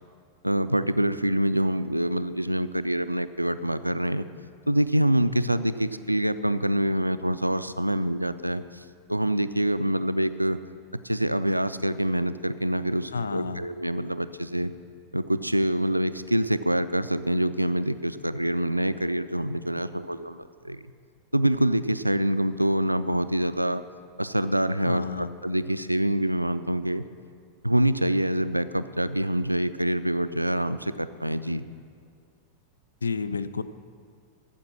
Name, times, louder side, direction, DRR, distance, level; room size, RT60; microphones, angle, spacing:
voice 1, 0.4-4.2 4.7-8.8 9.1-10.6 11.0-14.7 15.1-20.8 21.3-23.8 24.2-27.0 27.6-31.6, right 1 dB, 85° right, 13 dB, 0.3 m, -25 dB
voice 2, 13.1-13.6 24.8-25.3 33.0-33.6, left 4 dB, 75° left, 14 dB, 0.4 m, -30 dB
9.6 x 7.2 x 7.5 m, 2.3 s
figure-of-eight pair, 90°, 0 cm